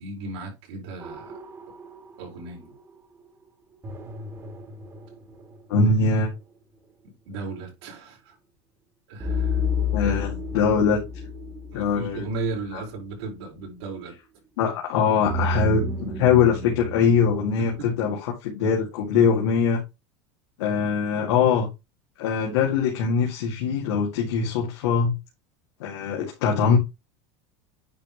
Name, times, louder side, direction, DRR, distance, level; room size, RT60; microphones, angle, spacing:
voice 1, 0.0-1.4 2.2-2.7 5.8-5.9 7.3-8.4 9.1-9.6 10.0-10.4 11.7-14.1 14.7-14.8 17.6-17.9 19.1-19.2, right 3 dB, 80° right, 4.4 m, -35 dB
sound 1, 1.0-2.8 3.8-5.9 9.2-12.9 15.3-18.1, left 3 dB, 20° right, 1.6 m, -31 dB
voice 2, 5.7-6.3 9.9-11.0 11.7-12.2 12.7-12.8 14.6-19.8 20.6-21.7 22.2-25.1 25.8-26.8, left 6 dB, 80° left, 1.9 m, -22 dB
9.4 x 3.4 x 5.0 m
supercardioid pair, 160°, 14 cm